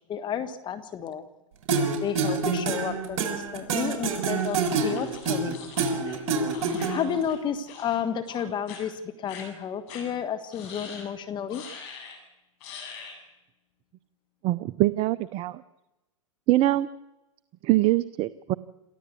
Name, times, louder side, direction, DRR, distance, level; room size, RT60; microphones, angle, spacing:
voice 1, 0.1-1.2 2.0-5.6 6.9-11.6, left 8 dB, 25° left, 9 dB, 1.4 m, -31 dB
sound 1, 1.7-7.2, right 4 dB, 55° right, 6.0 m, -27 dB
sound 2, 4.4-7.4 7.7-8.0 8.3-8.8 9.3-9.4 9.9-10.0 10.5-11.1 11.5-12.2 12.6-13.2, left 6 dB, 50° left, 7.7 m, -44 dB
voice 2, 14.4-15.6 16.5-16.9 17.6-18.5, right 16 dB, 35° right, 16 dB, 0.7 m, -23 dB
28.0 x 14.5 x 8.4 m, 1.0 s
hypercardioid pair, 115°, 17 cm